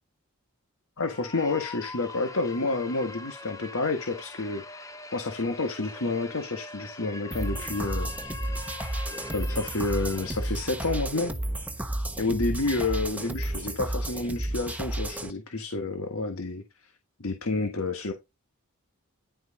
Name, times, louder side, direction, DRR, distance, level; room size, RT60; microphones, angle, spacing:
voice 1, 1.0-4.6 5.1-8.1 9.3-11.3 12.2-16.9 17.2-18.1, left 3 dB, 70° left, 1.6 m, -29 dB
sound 1, 1.0-10.8, left 3 dB, 15° left, 0.7 m, -43 dB
sound 2, 7.3-15.3, right 1 dB, 5° right, 1.0 m, -32 dB
11.0 x 4.8 x 4.2 m
head